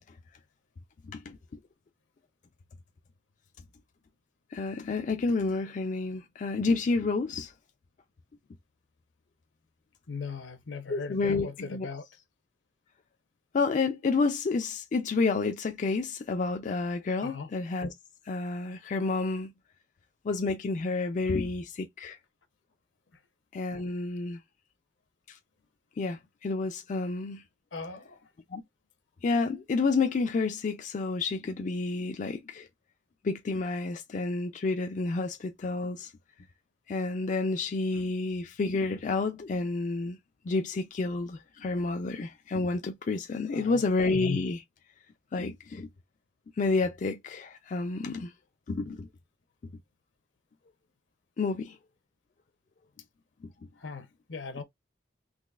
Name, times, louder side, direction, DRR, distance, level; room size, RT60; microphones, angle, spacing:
voice 1, 1.0-1.4 4.5-7.5 10.9-11.9 13.5-17.9 18.3-19.5 20.2-22.2 23.5-24.4 25.3-25.4 26.0-27.4 28.5-28.6 29.2-32.7 33.2-36.1 36.9-40.2 40.4-44.6 45.3-45.9 46.6-48.3 48.7-49.1 51.4-51.8 53.4-53.5, left 3 dB, 40° left, 0.3 m, -30 dB
voice 2, 10.1-12.1 17.2-17.5 27.7-28.2 43.4-43.9 53.8-54.6, left 4 dB, 80° left, 0.8 m, -39 dB
3.9 x 3.0 x 2.3 m
head